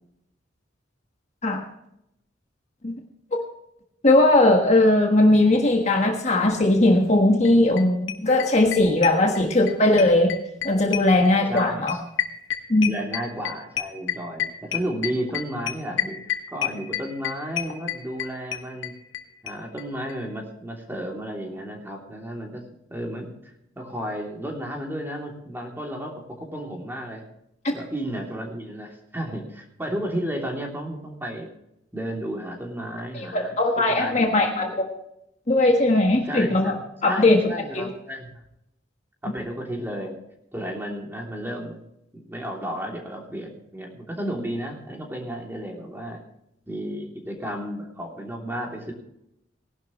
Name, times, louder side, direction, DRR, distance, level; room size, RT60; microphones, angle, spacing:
voice 1, 4.0-10.3 10.6-11.9 12.7-12.9 33.1-34.9 35.5-36.8 37.0-37.9, left 2 dB, 35° left, 2 dB, 1.4 m, -19 dB
sound 1, 7.4-7.5 7.8-7.9 8.1-9.7 10.0-19.2 19.5-19.6 19.8-19.9 20.1-20.2, left 11 dB, 80° left, 1.3 m, -28 dB
voice 2, 11.5-12.0 12.8-18.9 19.4-22.6 22.9-27.2 27.7-31.5 31.9-33.6 33.9-34.7 36.2-36.8 37.0-38.3 39.2-40.2 40.5-41.8 42.1-46.2 46.7-48.9, equal, 10° right, 0 dB, 3.0 m, -33 dB
19.0 x 11.5 x 3.1 m, 0.80 s
head